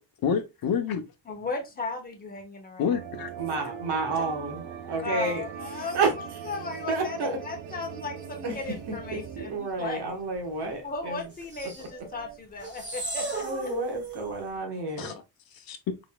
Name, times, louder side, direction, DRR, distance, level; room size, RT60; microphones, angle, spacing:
voice 1, 0.2-1.0 2.8-3.3 4.1-4.3 15.0-15.2 15.5-16.0, left 7 dB, 55° left, 0.8 m, -29 dB
voice 2, 1.3-2.9 5.0-6.0 6.5-10.2 10.8-13.4, left 4 dB, 20° left, 1.1 m, -36 dB
sound 1, 2.9-10.4 10.7-10.8 11.9-12.4, right 7 dB, 80° right, 0.8 m, -41 dB
voice 3, 3.4-5.4 5.7-6.1 6.9-7.4 8.4-8.6 9.4-11.3 13.4-15.1, right 3 dB, 65° right, 1.3 m, -30 dB
sound 2, 11.4-11.9 12.6-14.3, right 3 dB, 25° right, 1.3 m, -35 dB
3.9 x 3.7 x 2.2 m
cardioid pair, 140°, 44 cm